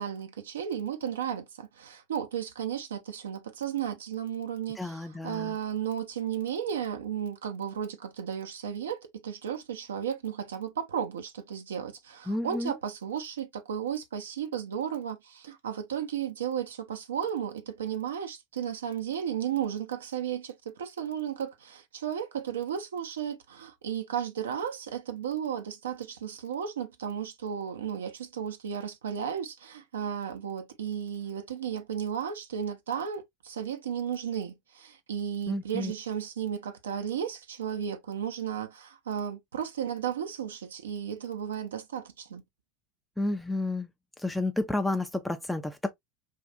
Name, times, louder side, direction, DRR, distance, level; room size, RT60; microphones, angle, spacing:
voice 1, 0.0-42.4, right 8 dB, 80° right, 0.5 m, -34 dB
voice 2, 4.8-5.6 12.3-12.8 35.5-35.9 43.2-43.9 44.2-45.9, left 2 dB, 5° left, 0.4 m, -31 dB
3.5 x 2.4 x 2.5 m
hypercardioid pair, 80°, 0 cm